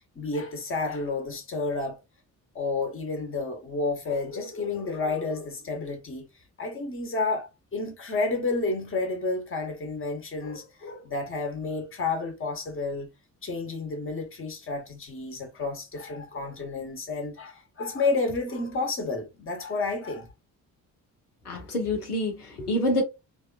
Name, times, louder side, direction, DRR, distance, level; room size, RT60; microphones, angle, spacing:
voice 1, 0.1-2.0 2.5-6.2 6.6-13.1 13.4-20.3, left 3 dB, 30° left, 1.1 m, -30 dB
voice 2, 21.4-23.0, left 1 dB, 85° left, 0.6 m, -27 dB
3.4 x 2.2 x 2.4 m
figure-of-eight pair, 40°, 45 cm